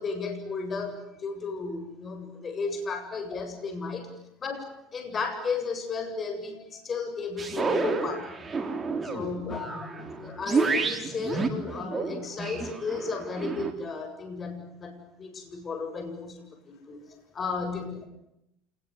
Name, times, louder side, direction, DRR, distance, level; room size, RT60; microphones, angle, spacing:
voice 1, 0.0-4.1 4.4-8.3 9.0-9.7 10.2-17.0 17.3-17.9, left 4 dB, 30° left, 7 dB, 7.8 m, -34 dB
sound 1, 7.4-13.7, right 4 dB, 20° right, 3.8 m, -30 dB
voice 2, 9.1-10.4 16.7-16.9 17.7-18.0, left 4 dB, 70° left, 6 dB, 5.0 m, -42 dB
28.0 x 21.0 x 9.8 m, 0.81 s
supercardioid pair, 105°, 0 cm